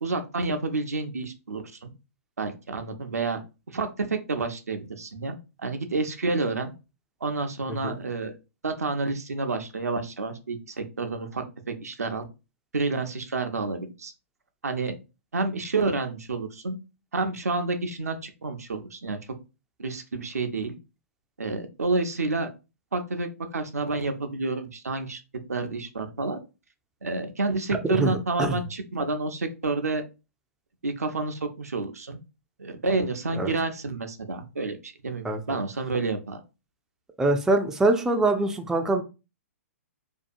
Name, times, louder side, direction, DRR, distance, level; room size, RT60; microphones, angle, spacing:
voice 1, 0.0-1.9 2.4-3.4 3.7-6.7 7.2-8.4 8.6-12.3 12.7-14.1 14.6-14.9 15.3-16.8 17.1-19.2 19.8-20.8 21.4-22.5 22.9-25.2 25.5-26.4 27.0-30.0 30.8-32.2 32.6-36.4, right 3 dB, 90° right, 6 dB, 0.6 m, -29 dB
voice 2, 27.9-28.6 33.4-33.5 35.2-35.6 37.2-39.0, right 2 dB, 5° right, 4 dB, 0.3 m, -24 dB
2.7 x 2.3 x 2.5 m, 0.29 s
hypercardioid pair, 125°, 8 cm